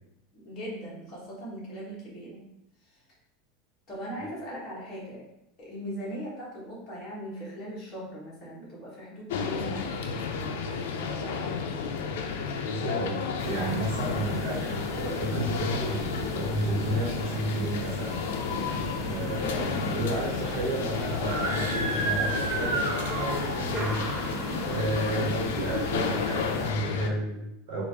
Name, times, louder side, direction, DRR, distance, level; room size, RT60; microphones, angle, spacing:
voice 1, 0.3-2.5 2.8-2.9 3.9-5.3 5.6-12.0, equal, 25° left, -7 dB, 1.3 m, -40 dB
sound 1, 9.3-27.1, left 5 dB, 90° left, 0.4 m, -32 dB
voice 2, 12.6-18.2 19.0-24.3 24.7-27.8, right 1 dB, 50° right, -7 dB, 1.3 m, -32 dB
sound 2, 13.4-26.7, right 1 dB, 20° right, 0.3 m, -38 dB
Screaming, 21.1-23.9, right 3 dB, 80° right, 0.6 m, -31 dB
3.6 x 2.5 x 3.3 m, 0.85 s
supercardioid pair, 175°, 0 cm